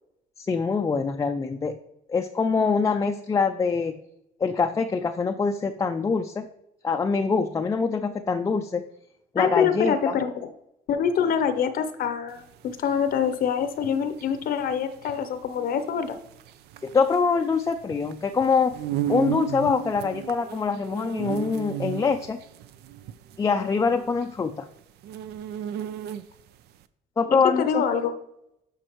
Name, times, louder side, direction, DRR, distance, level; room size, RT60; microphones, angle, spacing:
voice 1, 0.4-1.8 2.1-4.0 4.4-6.5 6.8-8.8 9.3-10.1 16.8-18.7 19.1-22.4 23.4-24.7 27.2-27.8, left 5 dB, 20° left, 5 dB, 0.4 m, -24 dB
voice 2, 9.4-10.5 10.9-16.2 27.3-28.1, left 7 dB, 60° left, 10 dB, 0.7 m, -25 dB
sound 1, 12.3-26.5, right 12 dB, 75° right, 0.5 m, -35 dB
11.0 x 5.3 x 3.0 m, 0.82 s
cardioid pair, 110°, 17 cm